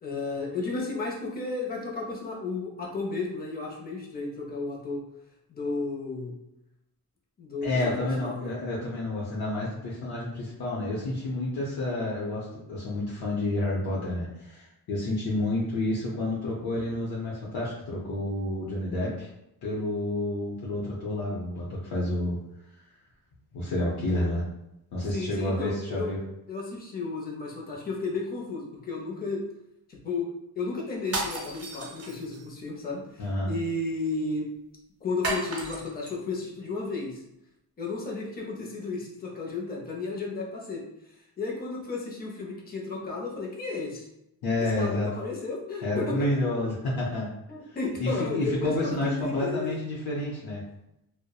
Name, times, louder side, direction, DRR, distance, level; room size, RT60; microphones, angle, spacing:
voice 1, 0.0-5.0 5.5-6.3 7.4-8.5 25.1-26.1 26.5-29.4 29.9-30.3 30.6-34.5 35.0-37.2 37.8-40.8 41.4-44.1 44.6-46.3 47.5-49.8, left 3 dB, 25° left, -2 dB, 0.5 m, -33 dB
voice 2, 7.6-19.3 19.6-22.4 23.5-24.4 24.9-26.2 33.2-33.5 44.4-45.1 45.8-47.3 48.0-50.6, left 1 dB, 90° left, -6 dB, 0.6 m, -29 dB
sound 1, 31.0-32.5 35.2-36.2, right 2 dB, 45° right, 0.5 m, -33 dB
2.7 x 2.0 x 2.2 m, 0.85 s
wide cardioid pair, 125°, 36 cm